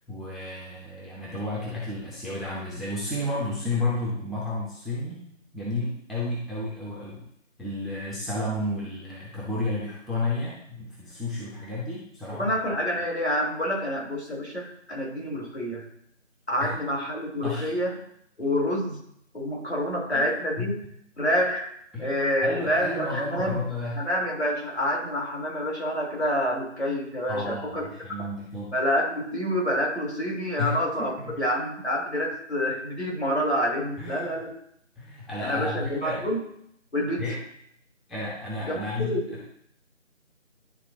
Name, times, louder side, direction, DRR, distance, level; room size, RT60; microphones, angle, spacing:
voice 1, 0.1-5.3 5.5-7.2 7.6-12.5 16.6-16.7 17.4-17.7 20.1-20.3 20.6-20.7 21.9-22.1 22.4-24.0 27.3-28.8 30.6-31.4 34.0-34.3 35.0-36.3 37.2-37.4 38.1-39.2, left 2 dB, ahead, -7 dB, 0.6 m, -32 dB
voice 2, 12.4-15.8 16.5-17.9 18.4-19.0 19.3-20.8 21.2-21.7 22.0-23.6 24.0-27.9 28.2-28.3 28.7-31.1 31.4-34.5 35.4-36.4 36.9-37.2 38.7-39.2, equal, 55° left, -2 dB, 2.2 m, -27 dB
11.0 x 3.8 x 2.8 m, 0.69 s
figure-of-eight pair, 175°, 39 cm